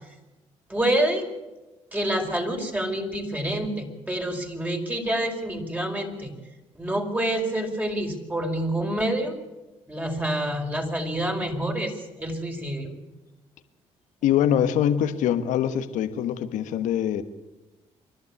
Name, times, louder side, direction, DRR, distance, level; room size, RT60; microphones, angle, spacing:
voice 1, 0.7-1.2 1.9-6.3 6.7-9.4 9.9-12.9, right 1 dB, 15° right, 4.7 m, -27 dB
voice 2, 14.2-17.2, left 10 dB, 80° left, 1.4 m, -23 dB
27.0 x 12.0 x 8.5 m
supercardioid pair, 70°, 13 cm